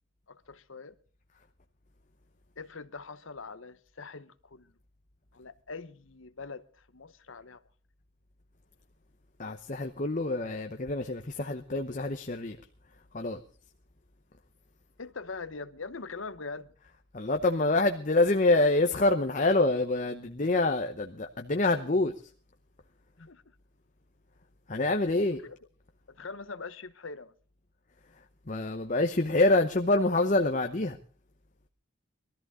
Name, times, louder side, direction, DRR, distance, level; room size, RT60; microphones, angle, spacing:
voice 1, 0.3-0.9 2.6-4.7 5.3-7.6 15.0-16.7 19.3-19.4 23.2-23.5 25.4-25.6 26.1-27.3, left 4 dB, 75° left, 1.0 m, -43 dB
voice 2, 9.4-12.6 13.1-13.4 17.1-22.1 24.7-25.4 28.5-31.0, left 2 dB, 40° left, 0.9 m, -26 dB
22.0 x 13.5 x 3.7 m
head